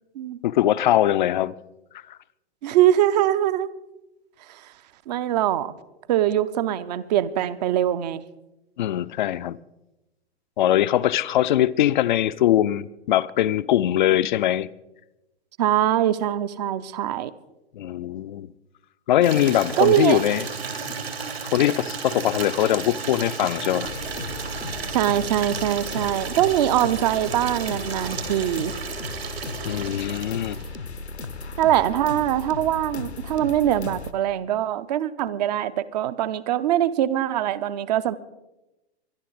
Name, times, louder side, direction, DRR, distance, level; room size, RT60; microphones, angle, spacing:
voice 1, 0.4-1.5 2.1-2.2 8.8-9.6 10.6-14.7 17.7-18.5 19.1-20.4 21.4-23.9 29.6-30.6, left 12 dB, 45° left, 0.5 m, -22 dB
voice 2, 2.6-3.7 4.5-4.6 5.1-5.7 6.1-8.2 15.6-17.3 19.8-20.2 24.9-28.7 31.6-38.2, right 12 dB, 40° right, 0.7 m, -22 dB
Water tap faucet / Liquid, 19.2-30.8, right 5 dB, 70° right, 3.1 m, -33 dB
sound 1, 23.8-34.1, left 3 dB, 80° left, 1.0 m, -36 dB
24.0 x 11.0 x 4.0 m
figure-of-eight pair, 105°, 33 cm